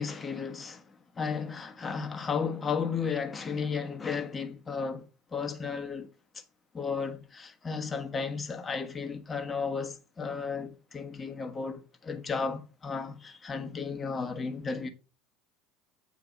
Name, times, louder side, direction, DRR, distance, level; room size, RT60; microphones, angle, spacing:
voice 1, 0.0-6.1 6.3-6.4 6.7-14.9, left 5 dB, 25° left, 1.4 m, -34 dB
9.0 x 4.7 x 5.4 m
figure-of-eight pair, 70°, 0 cm